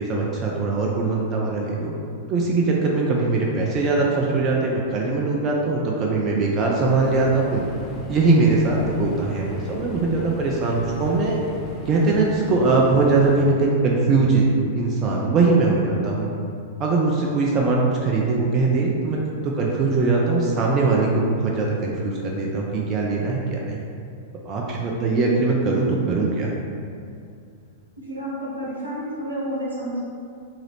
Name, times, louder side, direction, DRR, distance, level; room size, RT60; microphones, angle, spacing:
voice 1, 0.0-1.9 2.3-7.6 8.1-11.4 11.9-14.5 14.8-16.3 16.8-23.8 24.5-26.5, right 3 dB, 30° right, -3 dB, 0.4 m, -21 dB
sound 1, 6.8-13.4, left 2 dB, 30° left, 0.4 m, -38 dB
voice 2, 28.0-30.0, equal, 80° right, -6 dB, 0.8 m, -30 dB
2.8 x 2.4 x 3.2 m, 2.4 s
figure-of-eight pair, 100°, 0 cm